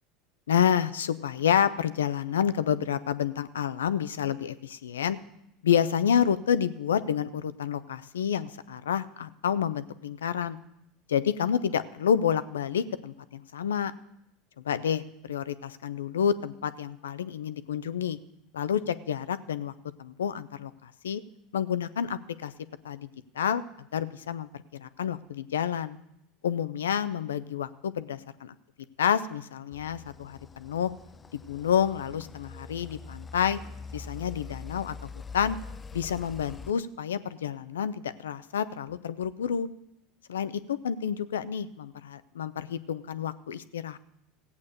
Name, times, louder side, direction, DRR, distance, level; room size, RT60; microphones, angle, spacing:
voice 1, 0.5-5.2 5.6-10.6 11.1-13.9 14.6-18.2 18.5-19.7 20.0-21.2 21.5-22.5 22.8-23.1 23.3-23.6 23.9-26.0 26.4-28.5 29.0-30.9 31.5-33.6 33.9-35.6 35.9-39.7 40.3-44.0, left 8 dB, 90° left, 14 dB, 0.6 m, -29 dB
sound 1, 29.7-36.7, left 4 dB, 25° left, 0.4 m, -44 dB
15.5 x 8.5 x 6.5 m, 0.83 s
hypercardioid pair, 90°, 0 cm